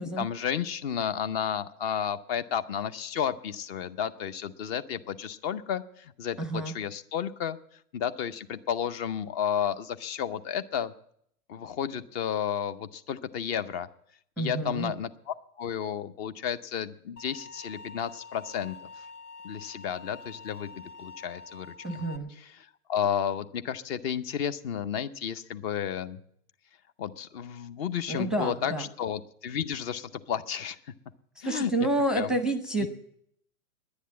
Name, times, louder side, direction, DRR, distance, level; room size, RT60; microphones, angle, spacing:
voice 1, 0.0-7.6 7.9-10.9 11.5-13.9 14.4-19.1 19.4-20.7 21.0-22.0 22.4-26.2 27.0-30.8 31.4-31.9 32.2-32.4 32.8-32.9, left 8 dB, 40° left, 13 dB, 0.7 m, -32 dB
voice 2, 6.4-6.7 14.4-14.9 21.8-22.3 28.1-28.8 31.4-32.9, right 1 dB, ahead, 9 dB, 0.6 m, -29 dB
sound 1, 17.2-22.2, left 4 dB, 75° left, 1.2 m, -46 dB
10.5 x 10.0 x 9.5 m, 0.69 s
hypercardioid pair, 130°, 45 cm